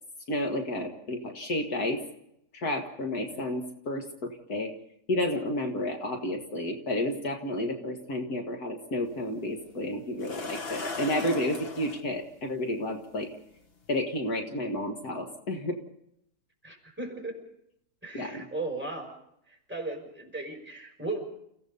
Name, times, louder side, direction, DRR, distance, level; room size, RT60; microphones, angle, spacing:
voice 1, 0.3-2.0 2.5-4.7 5.1-13.3 13.9-15.8 18.1-18.5, left 1 dB, 65° left, 3 dB, 2.2 m, -31 dB
sound 1, 9.1-9.2 10.2-12.0 13.2-13.3 13.8-14.0, left 3 dB, 35° left, 1.5 m, -37 dB
voice 2, 16.6-17.3 18.0-19.1 19.5-21.2, right 2 dB, 5° right, 2 dB, 5.5 m, -36 dB
29.0 x 16.5 x 5.4 m, 0.76 s
omnidirectional pair, 1.8 m